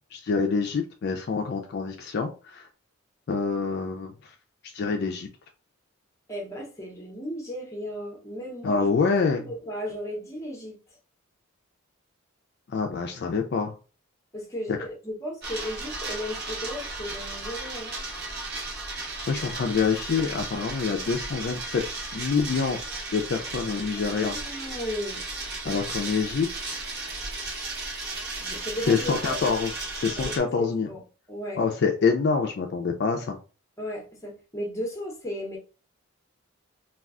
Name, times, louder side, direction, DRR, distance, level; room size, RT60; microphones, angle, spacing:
voice 1, 0.1-2.7 3.3-4.3 4.6-5.3 8.6-9.5 12.7-13.7 19.3-21.8 22.1-22.8 23.1-24.4 25.6-26.8 28.9-30.9 31.6-33.4, left 5 dB, 50° left, 4 dB, 0.4 m, -26 dB
voice 2, 6.3-8.9 9.3-10.8 14.3-17.9 23.9-25.2 28.4-29.3 30.2-31.0 31.3-31.6 33.8-35.6, equal, 15° left, 0 dB, 0.8 m, -35 dB
sound 1, 15.4-30.4, right 3 dB, 50° right, 0.9 m, -35 dB
2.3 x 2.3 x 3.5 m, 0.34 s
head